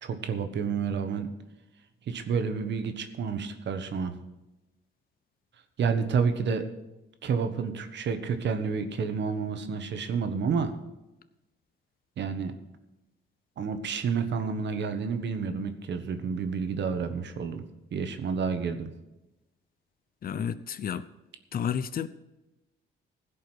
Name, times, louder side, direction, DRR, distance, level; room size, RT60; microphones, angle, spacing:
voice 1, 0.0-1.3 2.1-4.1 5.8-6.7 7.2-10.7 12.2-12.5 13.6-17.6 17.9-18.9, right 5 dB, 65° right, 8 dB, 1.5 m, -29 dB
voice 2, 20.2-21.0 21.5-22.1, left 8 dB, 50° left, 13 dB, 0.7 m, -31 dB
16.0 x 5.5 x 8.1 m, 0.98 s
cardioid pair, 90°, 20 cm